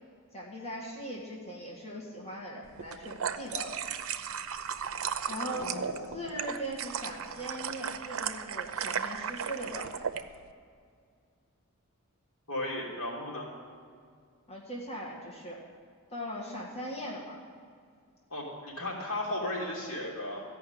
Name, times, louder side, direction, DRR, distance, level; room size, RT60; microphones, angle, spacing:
voice 1, 0.3-3.8 5.3-5.7 6.1-9.9 14.5-15.6 16.1-17.4, equal, 30° left, -4 dB, 1.8 m, -40 dB
sound 1, 2.8-10.2, right 7 dB, 70° right, 0.6 m, -35 dB
voice 2, 5.4-6.1 12.5-13.5 18.3-20.4, left 1 dB, 70° left, -3 dB, 3.1 m, -35 dB
14.0 x 5.7 x 9.4 m, 2.2 s
head